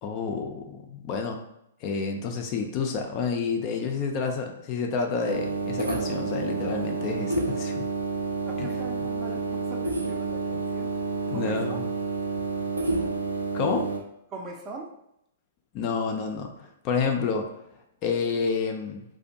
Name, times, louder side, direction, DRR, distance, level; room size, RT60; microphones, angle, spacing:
voice 1, 0.0-1.4 1.8-7.9 8.6-8.7 11.3-11.9 13.5-13.9 15.7-17.5 18.0-19.0, left 5 dB, 35° left, 3 dB, 0.3 m, -29 dB
sound 1, 5.2-14.0, right 3 dB, 85° right, 0.4 m, -29 dB
voice 2, 8.5-10.9 11.3-11.8 14.3-14.9, right 3 dB, 25° right, 1 dB, 0.5 m, -41 dB
2.4 x 2.2 x 2.7 m, 0.77 s
figure-of-eight pair, 115°, 0 cm